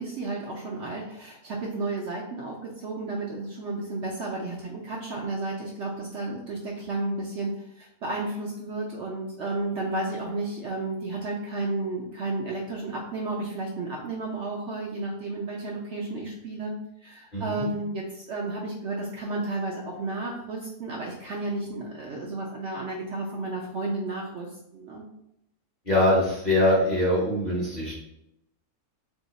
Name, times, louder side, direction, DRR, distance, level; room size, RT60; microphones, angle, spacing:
voice 1, 0.0-16.7 17.0-25.0, right 2 dB, 65° right, -2 dB, 0.7 m, -32 dB
voice 2, 17.3-17.7 25.9-28.0, left 1 dB, 40° left, -5 dB, 0.7 m, -23 dB
2.7 x 2.3 x 3.9 m, 0.83 s
omnidirectional pair, 1.6 m